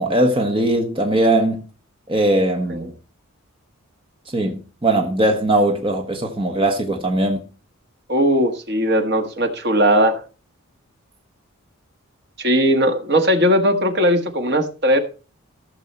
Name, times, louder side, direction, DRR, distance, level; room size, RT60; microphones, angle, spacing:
voice 1, 0.0-1.6 2.1-2.9 4.3-7.4, right 1 dB, 25° right, 1.2 m, -19 dB
voice 2, 8.1-10.2 12.4-15.0, equal, 50° right, 1.5 m, -18 dB
15.0 x 6.7 x 4.4 m
head